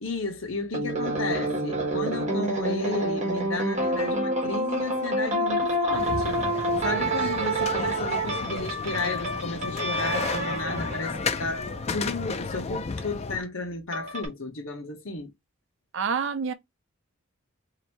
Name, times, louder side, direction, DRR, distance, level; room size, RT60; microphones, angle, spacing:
voice 1, 0.0-15.3, left 3 dB, 60° left, 1.0 m, -33 dB
sound 1, 0.7-12.1 13.9-14.3, right 1 dB, 35° right, 1.3 m, -28 dB
sound 2, 5.9-13.4, left 4 dB, 30° left, 0.4 m, -33 dB
voice 2, 15.9-16.5, right 6 dB, 60° right, 0.5 m, -27 dB
2.9 x 2.7 x 4.4 m
head